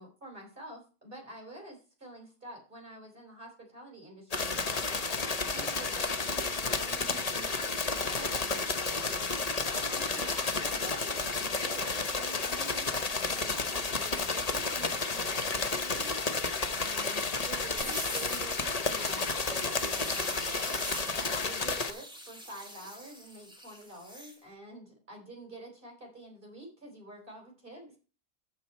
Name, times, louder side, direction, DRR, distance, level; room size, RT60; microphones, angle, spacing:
voice 1, 0.0-5.0 5.4-9.3 9.8-20.8 21.2-28.0, right 1 dB, 35° right, 1 dB, 4.1 m, -48 dB
sound 1, 4.3-21.9, left 4 dB, 30° left, 0.8 m, -31 dB
sound 2, 17.8-24.4, equal, 5° right, 2.2 m, -43 dB
14.5 x 4.8 x 4.2 m, 0.33 s
omnidirectional pair, 1.6 m